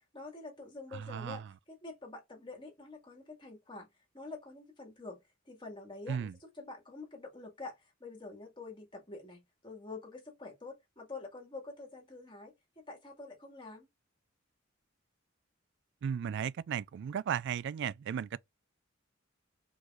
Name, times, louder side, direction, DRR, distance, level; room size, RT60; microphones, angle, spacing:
voice 1, 0.1-1.4 1.7-3.9 4.1-5.2 5.5-6.3 6.6-7.8 8.0-13.9, left 3 dB, 25° left, 2.2 m, -47 dB
voice 2, 0.9-1.5 6.1-6.4 16.0-18.4, right 8 dB, 60° right, 0.3 m, -35 dB
4.8 x 4.0 x 2.5 m
head